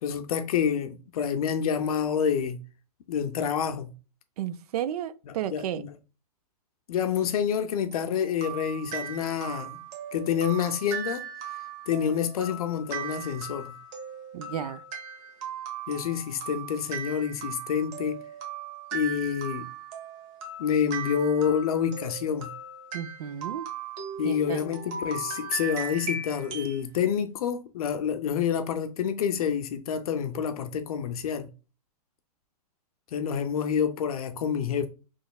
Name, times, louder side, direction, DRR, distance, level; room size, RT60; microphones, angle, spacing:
voice 1, 0.0-2.6 3.1-3.9 5.5-5.9 6.9-9.8 10.1-11.2 11.9-13.8 15.9-18.2 18.9-19.7 20.6-22.5 24.2-31.5 33.1-34.9, left 8 dB, 65° left, 0.5 m, -28 dB
voice 2, 4.4-5.8 14.3-14.8 22.9-23.7 24.2-24.6, right 10 dB, 70° right, 0.4 m, -33 dB
sound 1, 7.9-26.8, right 6 dB, 30° right, 0.9 m, -38 dB
4.1 x 3.1 x 2.2 m
hypercardioid pair, 150°, 20 cm